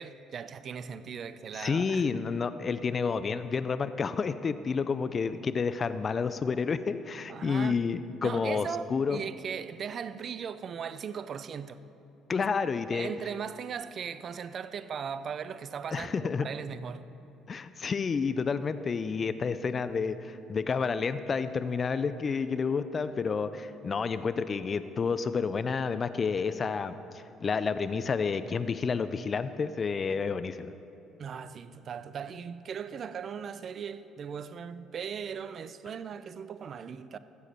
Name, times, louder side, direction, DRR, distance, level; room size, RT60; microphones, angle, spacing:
voice 1, 0.0-2.0 7.3-7.8 8.2-11.8 12.4-12.5 12.9-17.0 31.2-37.2, right 7 dB, 50° right, 14 dB, 0.4 m, -38 dB
voice 2, 1.5-9.2 12.3-13.1 15.9-16.5 17.5-27.0 27.4-30.7, left 5 dB, 40° left, 13 dB, 0.4 m, -30 dB
15.0 x 7.1 x 4.4 m, 2.8 s
hypercardioid pair, 60°, 0 cm